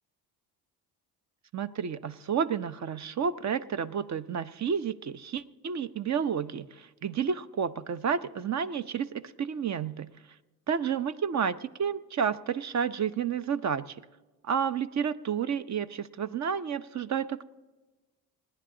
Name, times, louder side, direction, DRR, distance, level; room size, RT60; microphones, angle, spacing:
voice 1, 1.5-10.1 10.7-14.0 14.4-17.4, right 7 dB, 40° right, 15 dB, 0.7 m, -31 dB
27.5 x 10.0 x 3.8 m, 1.2 s
supercardioid pair, 65°, 41 cm